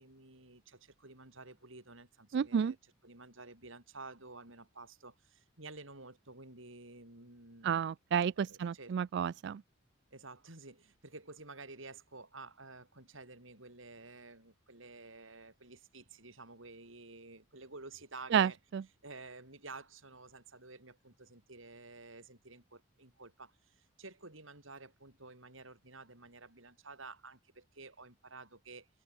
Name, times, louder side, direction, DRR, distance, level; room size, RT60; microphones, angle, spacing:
voice 1, 0.0-7.8 8.4-9.0 10.1-18.6 19.0-28.9, right 3 dB, 70° right, 6.2 m, -52 dB
voice 2, 2.3-2.7 7.6-9.6 18.3-18.8, right 7 dB, 55° right, 0.3 m, -31 dB
open air
head